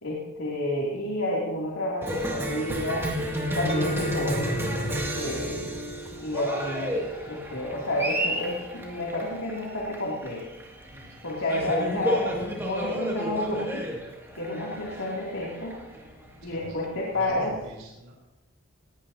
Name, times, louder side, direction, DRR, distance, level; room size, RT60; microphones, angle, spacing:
voice 1, 0.0-3.1 3.5-4.6 4.9-5.7 6.2-10.4 11.2-13.9 14.3-15.7 16.4-17.5, left 1 dB, 75° left, -4 dB, 2.8 m, -30 dB
Cheering, 2.0-17.2, equal, 10° right, 2.4 m, -32 dB
Mallet percussion, 3.7-8.3, right 3 dB, 25° left, 1.4 m, -39 dB
voice 2, 10.8-11.5 16.4-16.8 17.1-18.1, right 1 dB, 75° right, -2 dB, 3.8 m, -45 dB
19.5 x 17.5 x 2.8 m, 0.99 s
head